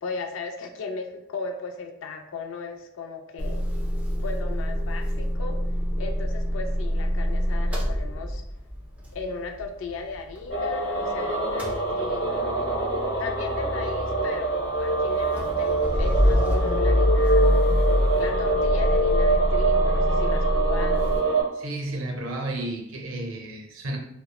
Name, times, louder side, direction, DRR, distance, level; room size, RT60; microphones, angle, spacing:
voice 1, 0.0-3.7 4.2-5.6 6.0-8.4 9.1-12.9 13.2-17.6 18.2-21.1, left 4 dB, 70° left, 5 dB, 0.3 m, -36 dB
Motor vehicle (road) / Engine starting / Idling, 3.4-11.1 11.4-21.2, equal, 5° right, 0.3 m, -26 dB
sound 1, 10.5-21.4, right 2 dB, 55° left, 0.9 m, -25 dB
voice 2, 21.5-24.0, right 1 dB, 80° right, 1 dB, 0.5 m, -32 dB
2.8 x 2.0 x 2.2 m, 0.77 s
head